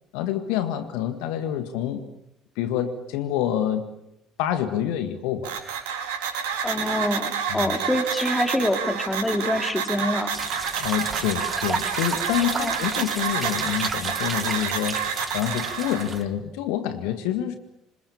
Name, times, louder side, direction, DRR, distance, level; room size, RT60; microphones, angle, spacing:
voice 1, 0.1-2.1 2.6-3.9 4.4-5.5 7.5-7.8 10.8-17.6, left 10 dB, 65° left, 9 dB, 1.7 m, -27 dB
sound 1, 5.4-16.1, right 7 dB, 70° right, 5.0 m, -29 dB
voice 2, 6.6-10.3 12.5-12.7, left 1 dB, 10° left, 6 dB, 3.6 m, -25 dB
sound 2, 10.3-16.2, right 4 dB, 25° right, 2.3 m, -32 dB
28.5 x 26.0 x 7.0 m, 0.81 s
figure-of-eight pair, 55°, 0 cm